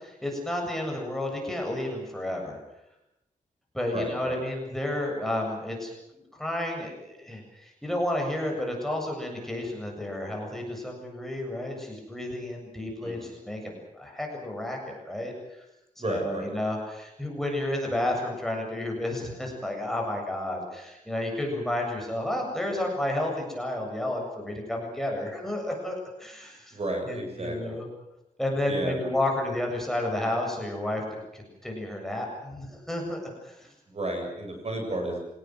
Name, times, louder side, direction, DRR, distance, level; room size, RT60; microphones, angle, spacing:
voice 1, 0.0-2.6 3.7-15.6 16.0-26.8 27.0-27.9 28.4-31.0 31.3-33.7, left 1 dB, ahead, 0 dB, 7.7 m, -31 dB
voice 2, 3.9-4.4 13.0-13.3 16.0-16.5 26.7-27.8 28.7-29.1 33.9-35.2, right 2 dB, 45° right, 3 dB, 7.5 m, -32 dB
26.0 x 19.0 x 7.9 m, 0.89 s
wide cardioid pair, 100°, 15 cm